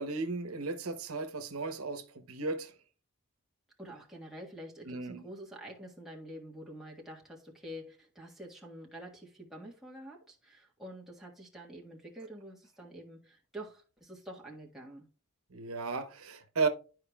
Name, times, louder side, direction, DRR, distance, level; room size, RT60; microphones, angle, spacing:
voice 1, 0.0-2.7 4.9-5.2 15.5-16.7, right 4 dB, 80° right, 1.0 m, -34 dB
voice 2, 3.8-15.1, equal, ahead, 1.5 m, -47 dB
12.0 x 4.8 x 2.3 m
head